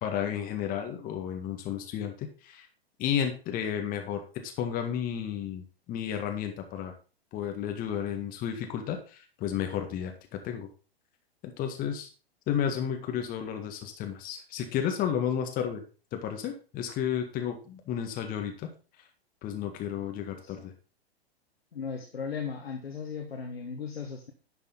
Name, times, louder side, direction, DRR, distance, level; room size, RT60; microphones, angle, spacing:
voice 1, 0.0-2.7 3.0-6.9 7.3-10.7 11.4-12.1 12.5-15.8 16.1-18.7 19.4-20.7, left 9 dB, 25° left, 5 dB, 1.7 m, -32 dB
voice 2, 20.3-20.6 21.7-24.3, left 6 dB, 70° left, 4 dB, 1.5 m, -37 dB
11.0 x 6.7 x 4.0 m, 0.34 s
figure-of-eight pair, 105°, 32 cm